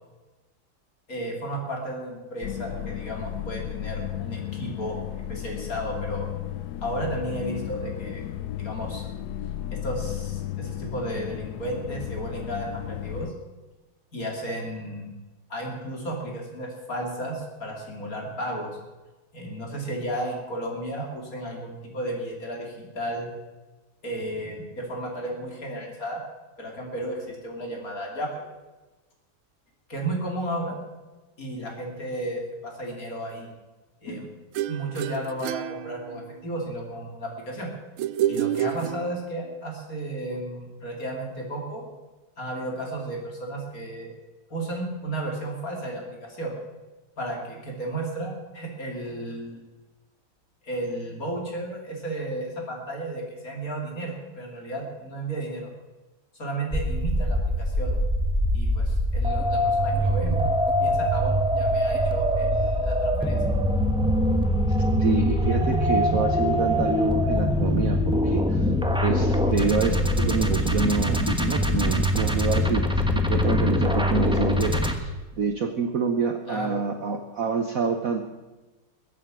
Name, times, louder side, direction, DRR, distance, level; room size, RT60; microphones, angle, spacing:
voice 1, 1.1-5.0 5.3-6.3 6.8-8.2 8.6-9.1 9.7-13.3 14.1-15.1 15.5-18.7 19.3-23.3 24.0-26.2 26.6-28.3 29.9-30.8 31.4-33.5 34.0-34.3 34.7-37.7 38.3-41.8 42.4-44.1 44.5-46.6 47.2-49.6 50.6-55.7 56.4-58.0 58.5-60.4 60.8-63.4 76.5-76.8, right 1 dB, 40° left, 0 dB, 3.3 m, -33 dB
sound 1, 2.4-13.3, left 12 dB, 80° left, 0.8 m, -34 dB
sound 2, 34.5-36.5 38.0-39.5, right 12 dB, 80° right, 1.4 m, -29 dB
sound 3, 56.7-74.9, left 1 dB, 5° right, 0.6 m, -23 dB
voice 2, 64.7-68.7 69.0-78.3, right 5 dB, 55° right, 5 dB, 1.1 m, -27 dB
21.5 x 8.4 x 6.1 m, 1.2 s
omnidirectional pair, 2.3 m